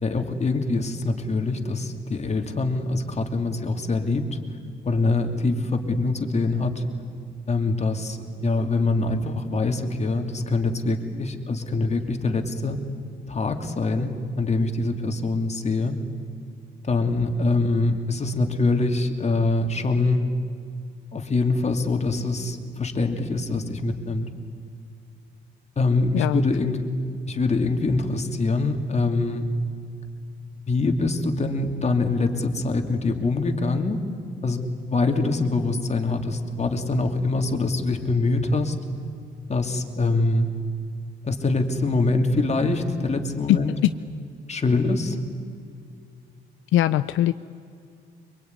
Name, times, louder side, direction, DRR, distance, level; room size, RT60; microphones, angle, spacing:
voice 1, 0.0-4.2 4.8-6.8 7.5-12.8 13.3-16.0 16.8-20.2 21.1-24.3 25.8-26.8 27.3-29.5 30.7-34.0 34.4-38.7 39.5-40.5 41.2-43.7 44.5-45.2, left 3 dB, 35° left, 4 dB, 2.8 m, -24 dB
voice 2, 46.7-47.3, left 13 dB, 85° left, 12 dB, 0.6 m, -21 dB
24.0 x 23.0 x 9.7 m, 2.4 s
cardioid pair, 90°, 20 cm